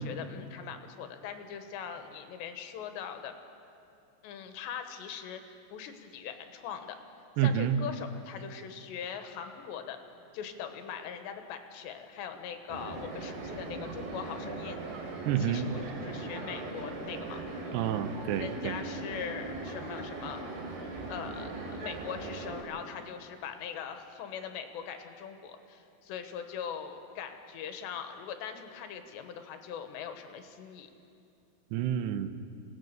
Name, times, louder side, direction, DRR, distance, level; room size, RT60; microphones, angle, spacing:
voice 1, 0.0-3.3 4.2-7.0 7.4-10.0 10.3-14.8 15.4-17.4 18.4-20.4 21.1-30.9, left 7 dB, 85° left, 7 dB, 3.5 m, -41 dB
voice 2, 7.4-7.8 15.3-15.7 17.7-18.8 31.7-32.4, right 9 dB, 80° right, 10 dB, 2.9 m, -29 dB
sound 1, 12.7-22.6, right 2 dB, 65° right, 4.8 m, -39 dB
28.5 x 18.0 x 6.7 m, 2.6 s
omnidirectional pair, 5.0 m